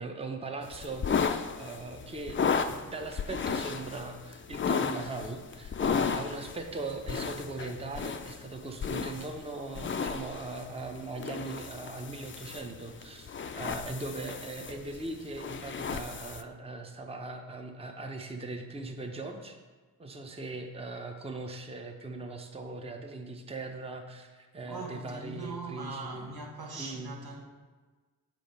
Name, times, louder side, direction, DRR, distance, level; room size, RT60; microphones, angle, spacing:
voice 1, 0.0-19.6 20.0-26.4 26.8-27.2, right 2 dB, 15° right, 0.7 m, -40 dB
sound 1, 0.6-16.4, left 6 dB, 35° left, 0.4 m, -34 dB
voice 2, 24.6-27.5, right 3 dB, 75° right, 1.3 m, -41 dB
7.6 x 4.1 x 5.3 m
cardioid pair, 80°, 37 cm